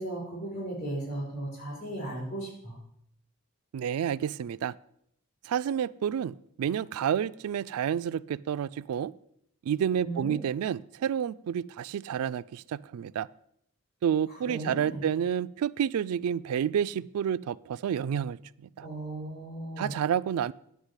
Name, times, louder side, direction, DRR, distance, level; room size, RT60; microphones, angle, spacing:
voice 1, 0.0-2.8 10.0-10.4 14.3-15.1 18.8-19.9, right 1 dB, 45° left, -3 dB, 5.4 m, -36 dB
voice 2, 3.7-4.7 5.4-9.1 9.7-13.3 14.0-18.4 18.8-18.9 19.8-20.5, right 8 dB, 80° right, 15 dB, 0.3 m, -29 dB
10.5 x 5.1 x 8.1 m, 0.72 s
head